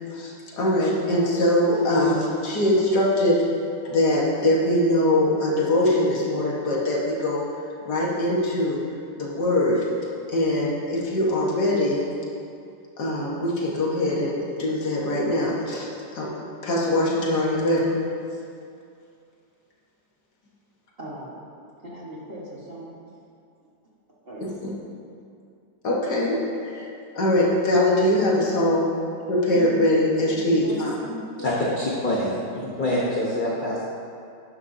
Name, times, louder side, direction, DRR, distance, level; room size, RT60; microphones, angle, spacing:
voice 1, 0.1-3.4 3.8-7.4 7.9-8.8 9.1-9.9 10.3-12.1 13.0-15.9 16.1-16.3 16.6-18.0 24.4-24.5 25.8-28.9 29.3-31.1, left 1 dB, 65° left, -4 dB, 2.0 m, -22 dB
voice 2, 21.0-21.4 21.8-22.9 24.2-24.5 29.5-29.8 30.3-31.5, right 1 dB, 35° right, -5 dB, 1.6 m, -38 dB
voice 3, 31.4-32.4 32.8-33.8, left 1 dB, 35° left, -6 dB, 1.1 m, -25 dB
11.5 x 10.0 x 2.7 m, 2.4 s
omnidirectional pair, 1.9 m